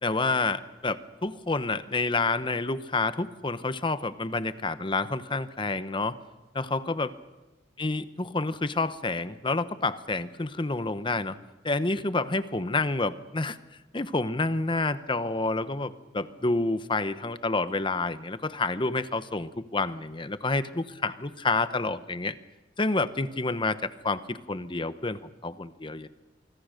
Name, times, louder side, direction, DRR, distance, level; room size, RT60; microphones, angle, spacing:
voice 1, 0.0-6.1 6.5-7.1 7.8-11.4 11.6-13.6 13.9-22.3 22.8-26.1, left 3 dB, 25° left, 13 dB, 0.9 m, -29 dB
25.0 x 24.0 x 6.6 m, 1.1 s
head